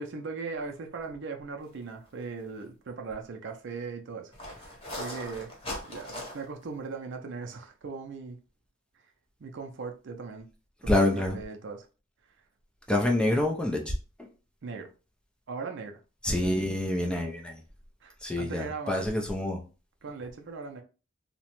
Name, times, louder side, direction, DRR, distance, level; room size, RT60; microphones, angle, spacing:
voice 1, 0.0-5.5 5.8-8.4 9.4-10.5 10.8-11.9 14.6-14.9 15.5-16.0 18.0-19.0 20.0-20.8, right 4 dB, 60° right, 0.4 m, -39 dB
sound 1, 2.1-2.2 2.6-2.7 4.3-6.6, left 1 dB, 25° left, 0.9 m, -39 dB
voice 2, 10.9-11.4 12.9-13.9 14.2-14.3 16.2-17.6 18.2-19.6, left 1 dB, 5° left, 0.4 m, -27 dB
2.8 x 2.1 x 2.9 m
head